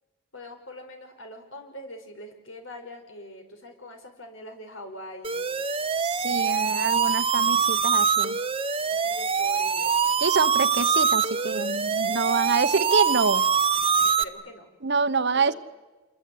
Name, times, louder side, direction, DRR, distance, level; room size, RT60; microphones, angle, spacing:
voice 1, 0.3-5.5 8.9-10.1 12.2-12.8 13.9-14.7 15.3-15.6, left 1 dB, 70° left, 5 dB, 5.6 m, -43 dB
sound 1, 5.2-14.2, right 6 dB, 30° right, 0.9 m, -24 dB
voice 2, 6.0-8.4 10.2-13.4 14.8-15.5, right 4 dB, 60° right, 12 dB, 1.1 m, -26 dB
28.0 x 22.5 x 9.6 m, 1.2 s
head